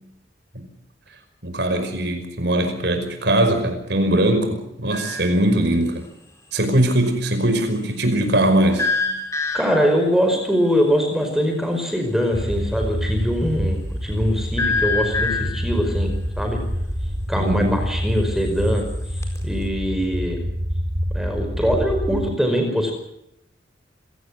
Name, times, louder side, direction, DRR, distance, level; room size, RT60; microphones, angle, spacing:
voice 1, 1.4-6.0 6.5-8.9 17.4-17.8, right 1 dB, 65° right, 7 dB, 5.4 m, -20 dB
sound 1, 4.9-5.4 8.8-10.0 14.6-15.7 18.5-19.4, left 4 dB, 15° left, 4.4 m, -25 dB
voice 2, 9.5-16.6 17.3-18.8 19.4-20.4 21.1-22.9, equal, ahead, 3 dB, 5.0 m, -22 dB
sound 2, 12.3-22.3, equal, 40° right, 1.8 m, -27 dB
26.0 x 17.5 x 7.6 m, 0.81 s
head